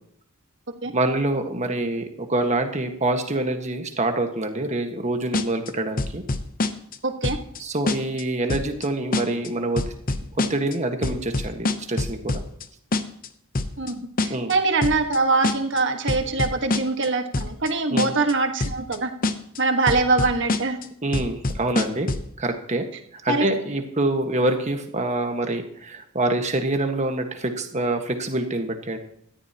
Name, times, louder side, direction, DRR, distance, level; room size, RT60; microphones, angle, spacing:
voice 1, 0.9-6.2 7.6-9.9 10.5-12.4 14.3-14.5 17.9-18.1 21.0-22.1 22.4-22.9 23.1-29.0, right 2 dB, 35° right, 5 dB, 1.6 m, -26 dB
sound 1, 5.3-5.7 6.0-7.0 7.2-7.6 7.9-8.2 8.5-8.8 9.1-9.5 9.8-10.7 11.0-12.6 12.9-13.3 13.5-13.9 14.2-14.5 14.8-15.2 15.4-15.8 16.1-17.1 17.3-17.7 18.0-18.3 18.6-19.0 19.2-19.6 19.9-20.8 21.1-22.3, left 2 dB, 40° left, 0.8 m, -25 dB
voice 2, 7.0-7.4 13.8-19.1 19.6-20.8 23.3-23.5, right 3 dB, 55° right, 5 dB, 1.6 m, -23 dB
18.5 x 13.5 x 3.0 m, 0.70 s
head